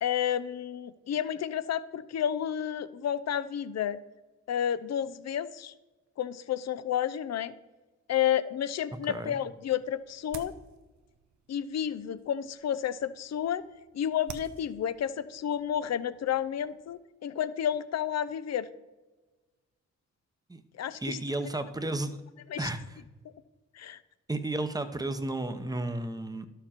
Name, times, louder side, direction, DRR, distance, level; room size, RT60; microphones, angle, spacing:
voice 1, 0.0-4.0 4.5-5.7 6.2-7.5 8.1-10.5 11.5-13.6 13.9-18.7 20.8-21.2 22.5-22.7 23.7-24.0, left 9 dB, 65° left, 15 dB, 0.6 m, -31 dB
sound 1, 9.3-17.0, right 6 dB, 75° right, 0.9 m, -52 dB
voice 2, 21.0-22.2 22.6-23.0 24.3-26.5, right 2 dB, 15° right, 9 dB, 0.9 m, -33 dB
12.0 x 6.9 x 4.4 m, 1.2 s
cardioid pair, 80°, 29 cm